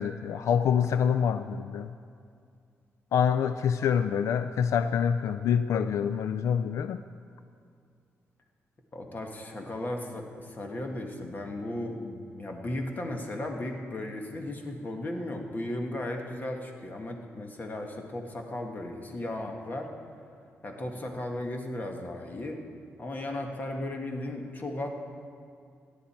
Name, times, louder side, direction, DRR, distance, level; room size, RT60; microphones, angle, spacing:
voice 1, 0.0-1.9 3.1-7.0, left 7 dB, 85° left, 11 dB, 0.3 m, -26 dB
voice 2, 8.9-19.9 20.6-22.6 23.0-24.9, left 1 dB, 35° left, 3 dB, 1.5 m, -35 dB
17.0 x 11.0 x 4.4 m, 2.3 s
cardioid pair, 105°, 5 cm